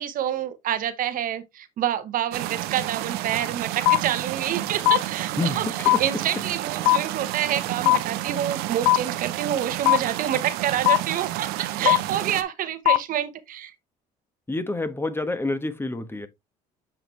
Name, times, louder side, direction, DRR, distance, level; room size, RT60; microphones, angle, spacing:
voice 1, 0.0-13.7, right 10 dB, 60° right, 1.0 m, -28 dB
sound 1, 2.3-12.4, right 15 dB, 85° right, 0.7 m, -31 dB
sound 2, 3.9-4.0 4.9-5.0 5.9-6.0 6.9-7.0 7.9-8.0 8.9-9.0 9.9-10.0 10.9-11.0 11.9-12.0 12.9-13.0, left 17 dB, 85° left, 0.5 m, -16 dB
voice 2, 14.5-16.3, left 2 dB, 15° left, 1.1 m, -27 dB
7.5 x 4.7 x 3.2 m
supercardioid pair, 85°, 16 cm